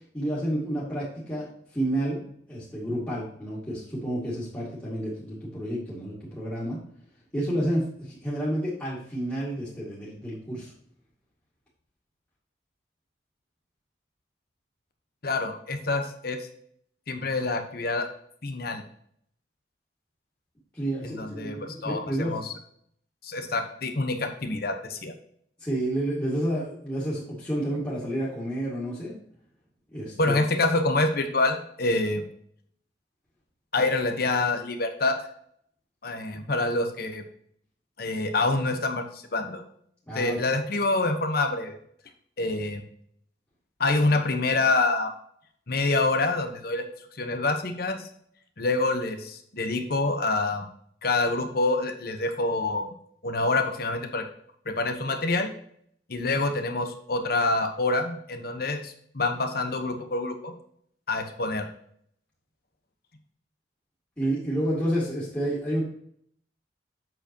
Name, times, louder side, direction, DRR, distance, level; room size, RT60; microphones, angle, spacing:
voice 1, 0.1-2.2 2.5-6.8 7.3-10.7 20.7-22.4 25.6-29.2 29.9-30.4 40.1-40.4 64.2-65.8, right 1 dB, 15° left, -10 dB, 2.3 m, -30 dB
voice 2, 15.2-16.5 17.1-18.1 18.4-18.8 21.0-22.5 23.2-25.1 30.2-32.2 33.7-35.2 36.0-37.2 38.0-39.6 40.1-41.8 42.4-42.8 43.8-45.1 45.7-46.9 47.1-48.1 48.6-50.7 51.0-52.9 53.2-54.2 54.6-55.5 56.1-60.5 61.1-61.7, left 2 dB, 55° left, 6 dB, 1.1 m, -26 dB
7.9 x 6.9 x 3.0 m, 0.65 s
head